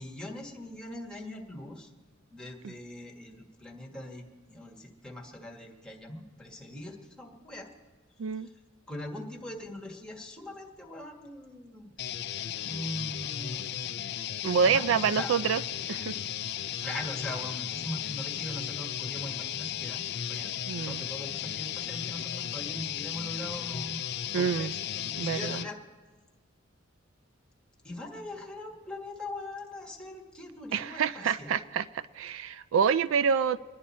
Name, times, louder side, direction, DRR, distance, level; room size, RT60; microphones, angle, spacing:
voice 1, 0.0-1.9 2.3-7.7 8.4-8.5 8.9-11.9 12.6-13.8 14.6-15.3 15.9-16.0 16.8-20.0 20.3-25.8 27.8-31.6, left 1 dB, 5° left, -1 dB, 1.5 m, -41 dB
sound 1, 12.0-25.7, left 10 dB, 55° left, 0.4 m, -35 dB
voice 2, 14.4-15.6 15.9-16.2 20.7-21.0 24.3-24.7 25.2-25.6 30.7-31.9 32.1-33.6, right 6 dB, 70° right, 15 dB, 0.3 m, -27 dB
24.5 x 10.5 x 4.2 m, 1.4 s
head